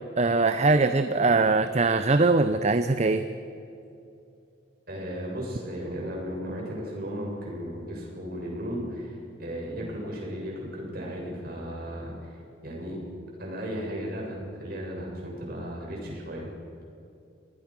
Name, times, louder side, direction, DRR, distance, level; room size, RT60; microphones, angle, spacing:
voice 1, 0.2-3.3, right 3 dB, 35° right, 10 dB, 0.7 m, -22 dB
voice 2, 4.9-12.4 12.6-13.0 13.4-16.5, equal, 50° right, -2 dB, 7.5 m, -35 dB
28.5 x 20.0 x 6.1 m, 2.6 s
head